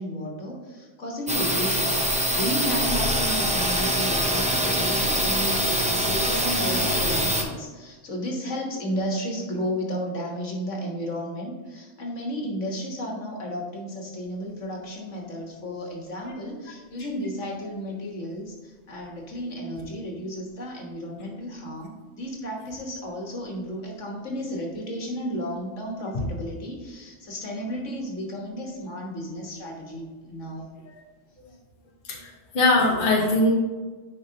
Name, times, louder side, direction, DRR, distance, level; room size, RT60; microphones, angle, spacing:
voice 1, 0.0-2.0 2.3-30.7, equal, 65° left, 0 dB, 1.6 m, -33 dB
sound 1, 1.3-7.4, equal, 10° right, 0.5 m, -24 dB
voice 2, 32.1-33.5, left 2 dB, 40° left, -2 dB, 1.1 m, -21 dB
9.8 x 5.1 x 2.8 m, 1.4 s
omnidirectional pair, 1.4 m